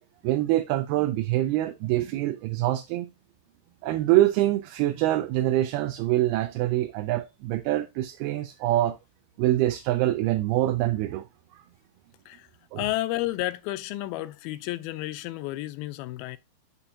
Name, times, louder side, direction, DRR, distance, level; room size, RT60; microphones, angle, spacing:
voice 1, 0.2-3.1 3.8-9.0 9.4-11.3 12.7-12.8, right 15 dB, 85° right, 2.6 m, -25 dB
voice 2, 12.8-16.4, left 16 dB, 85° left, 2.4 m, -31 dB
8.5 x 6.7 x 2.7 m
omnidirectional pair, 4.5 m